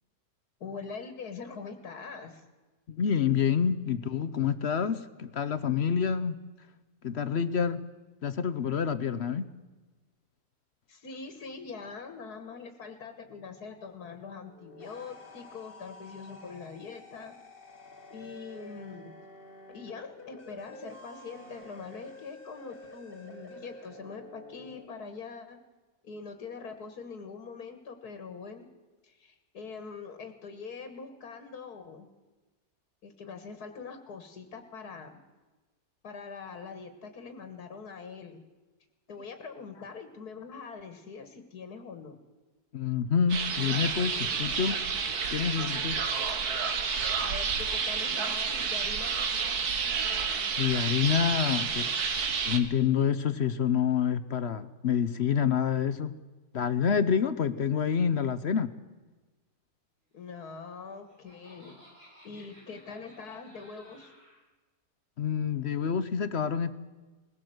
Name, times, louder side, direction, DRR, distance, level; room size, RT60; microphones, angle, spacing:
voice 1, 0.6-2.4 10.9-17.4 18.1-19.2 19.7-25.6 26.0-28.7 29.0-32.1 33.0-35.2 36.0-38.4 39.1-42.2 47.2-49.2 60.1-61.8 62.2-64.1, left 5 dB, 85° left, 8 dB, 2.1 m, -43 dB
voice 2, 2.9-6.4 7.0-7.8 8.2-9.5 42.7-44.8 45.3-46.0 50.6-52.0 52.5-56.2 56.5-58.7 65.2-66.8, left 7 dB, 55° left, 13 dB, 0.9 m, -27 dB
sound 1, 14.5-24.9, left 1 dB, 35° left, 2.4 m, -49 dB
sound 2, 43.3-52.6, right 5 dB, 85° right, 2.0 m, -30 dB
Laughter, 60.6-64.4, equal, 55° right, 7.5 m, -57 dB
20.0 x 16.5 x 7.9 m, 1.2 s
omnidirectional pair, 1.6 m